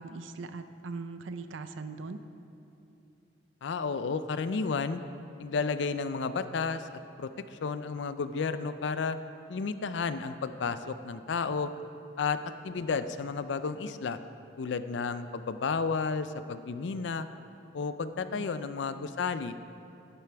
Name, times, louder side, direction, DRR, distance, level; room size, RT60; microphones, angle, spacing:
voice 1, 0.0-2.2 18.3-19.1, right 3 dB, 85° right, 10 dB, 0.5 m, -41 dB
voice 2, 3.6-5.0 5.4-9.2 9.5-11.7 12.2-12.4 12.6-14.2 14.6-17.3 17.7-19.6, left 5 dB, 70° left, 12 dB, 0.4 m, -32 dB
11.5 x 10.5 x 3.4 m, 2.8 s
head